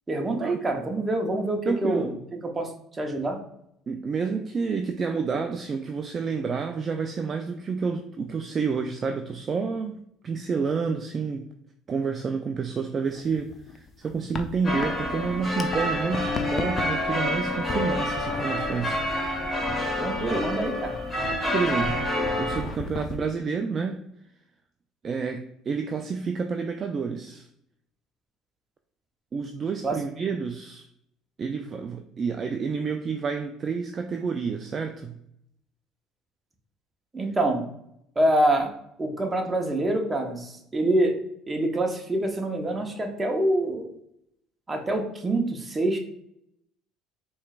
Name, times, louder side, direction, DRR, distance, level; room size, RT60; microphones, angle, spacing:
voice 1, 0.1-2.1 2.5-3.4 20.0-21.0 29.8-30.0 37.1-37.6 38.2-38.7 39.0-41.1 41.5-43.9 44.7-46.0, right 1 dB, 25° right, 3 dB, 0.9 m, -26 dB
voice 2, 1.7-2.1 3.9-11.5 11.9-19.0 21.5-24.0 25.0-27.5 29.3-30.9 31.4-35.2, right 5 dB, 40° right, 5 dB, 0.4 m, -29 dB
sound 1, 13.1-15.8 16.0-19.8 20.1-20.6 21.0-21.4 21.8-23.2, left 4 dB, 35° left, 0.6 m, -36 dB
sound 2, 14.6-22.6, left 1 dB, 20° left, 1.5 m, -28 dB
4.4 x 3.1 x 2.4 m, 0.75 s
supercardioid pair, 80°, 0 cm